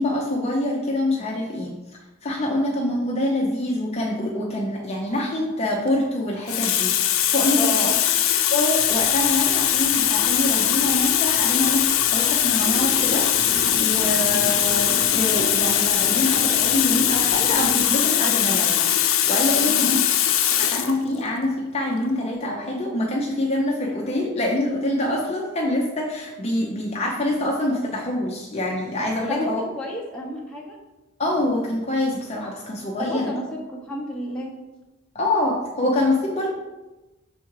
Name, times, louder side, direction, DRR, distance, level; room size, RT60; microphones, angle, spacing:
voice 1, 0.0-1.8 2.2-7.8 8.5-13.2 13.5-20.0 20.6-29.6 31.2-33.3 35.1-36.5, left 1 dB, 30° left, -2 dB, 0.6 m, -25 dB
Water tap faucet, 5.7-5.9 6.5-21.0 21.9-22.1, left 11 dB, 75° left, 0.5 m, -21 dB
voice 2, 7.6-8.0 19.6-19.9 29.3-30.8 33.0-34.5, left 1 dB, 5° left, -4 dB, 1.0 m, -30 dB
sound 1, 8.8-18.0, right 2 dB, 40° right, 1.6 m, -36 dB
6.0 x 3.6 x 4.7 m, 1.1 s
head